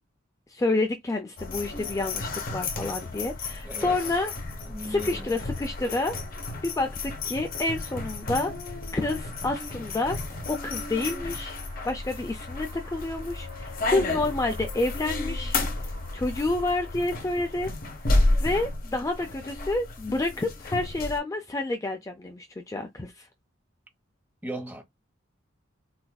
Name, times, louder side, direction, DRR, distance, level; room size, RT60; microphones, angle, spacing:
voice 1, 0.5-4.3 4.8-6.2 6.6-8.5 8.9-10.2 10.5-11.6 11.8-15.6 16.1-17.7 18.4-23.3, left 2 dB, 15° left, 0.4 m, -29 dB
sound 1, 1.4-21.2, left 2 dB, 50° left, 0.9 m, -32 dB
voice 2, 3.6-4.0 4.7-5.4 24.4-24.8, right 1 dB, 10° right, 1.0 m, -37 dB
Car passing by / Accelerating revving vroom, 9.2-16.7, right 2 dB, 40° right, 1.6 m, -52 dB
4.1 x 2.5 x 2.2 m
head